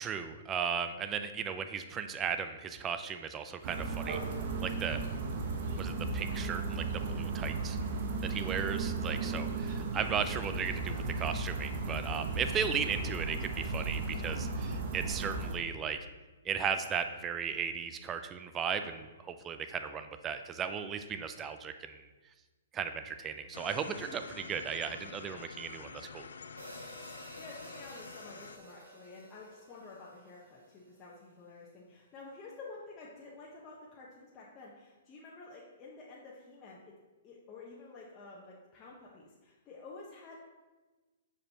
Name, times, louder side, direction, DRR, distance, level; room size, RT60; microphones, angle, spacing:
voice 1, 0.0-4.2 4.6-5.0 5.8-7.8 8.2-16.0 16.4-22.0 22.7-26.3, right 7 dB, 20° right, 9 dB, 0.4 m, -36 dB
sound 1, 3.6-15.6, right 3 dB, 55° right, 0.9 m, -35 dB
sound 2, 23.5-28.6, left 5 dB, 80° left, 0.4 m, -48 dB
sound 3, 26.6-30.9, equal, 90° right, 1.2 m, -52 dB
voice 2, 27.4-36.8 37.2-40.4, left 3 dB, 25° left, -5 dB, 1.0 m, -50 dB
6.6 x 5.2 x 2.9 m, 1.2 s
hypercardioid pair, 130°, 0 cm